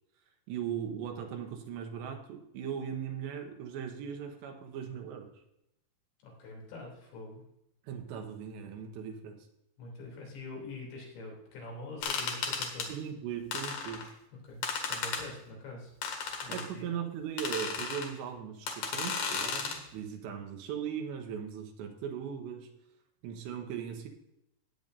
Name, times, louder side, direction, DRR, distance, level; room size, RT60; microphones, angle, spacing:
voice 1, 0.5-5.3 7.8-9.5 12.9-14.1 16.5-22.7 23.2-24.1, right 8 dB, 80° right, 4 dB, 3.4 m, -39 dB
voice 2, 6.2-7.4 9.8-12.9 14.4-15.9 16.4-16.9, left 2 dB, 85° left, -2 dB, 5.5 m, -45 dB
sound 1, 12.0-12.9 13.5-14.1 14.6-15.2 16.0-16.7 17.4-18.1 18.7-19.8, left 5 dB, 65° left, 3.1 m, -34 dB
17.0 x 9.1 x 2.7 m, 0.81 s
omnidirectional pair, 5.0 m